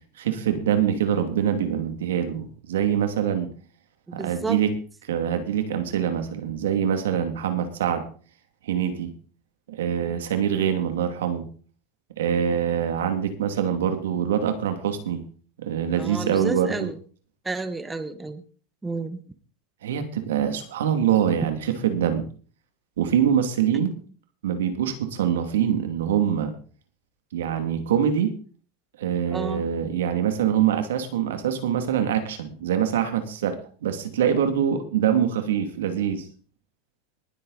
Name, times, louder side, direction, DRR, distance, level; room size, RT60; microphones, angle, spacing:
voice 1, 0.2-3.5 4.1-4.7 5.1-8.0 8.6-9.1 9.7-11.5 12.2-15.2 15.6-16.9 19.8-22.2 23.0-24.0 24.4-26.5 27.3-28.3 29.0-36.3, right 9 dB, 85° right, 8 dB, 2.5 m, -24 dB
voice 2, 4.1-4.6 15.9-17.0 17.4-18.4 18.8-19.2 29.3-29.6, right 3 dB, 15° right, 11 dB, 1.4 m, -31 dB
20.5 x 8.1 x 4.1 m, 0.40 s
supercardioid pair, 110°, 0 cm